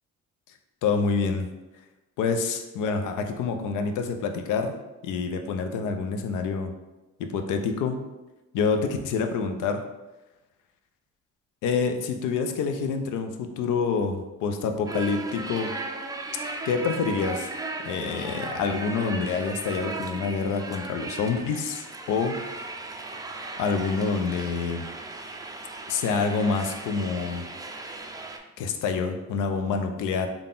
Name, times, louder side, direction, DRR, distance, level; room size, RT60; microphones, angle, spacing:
voice 1, 0.8-1.5 2.2-4.7 5.0-6.7 7.2-8.0 8.5-9.8 11.6-15.7 16.6-17.5 17.8-22.4 23.6-24.8 25.9-27.5 28.6-30.3, left 5 dB, 85° left, 6 dB, 0.5 m, -27 dB
sound 1, 14.9-28.4, right 3 dB, 15° right, 0.3 m, -37 dB
3.8 x 2.3 x 3.7 m, 1.1 s
cardioid pair, 90°, 30 cm